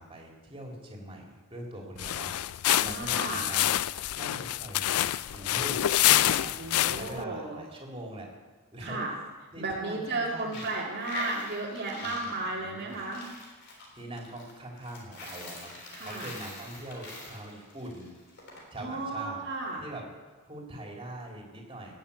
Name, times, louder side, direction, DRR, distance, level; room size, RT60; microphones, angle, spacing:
voice 1, 0.0-2.3 2.8-8.3 8.7-9.0 9.5-10.7 12.0-13.0 13.9-18.1 18.7-19.4 19.8-20.1 20.4-22.0, right 1 dB, 25° right, 0 dB, 3.2 m, -43 dB
sound 1, 2.0-7.2, left 13 dB, 80° left, 0.4 m, -27 dB
voice 2, 2.8-3.5 6.6-7.6 8.8-9.1 9.6-13.3 15.9-16.3 18.8-19.8, right 2 dB, 50° right, -4 dB, 2.1 m, -34 dB
Coin (dropping), 10.4-18.6, left 1 dB, 55° left, 3.8 m, -43 dB
18.5 x 7.1 x 8.4 m, 1.3 s
head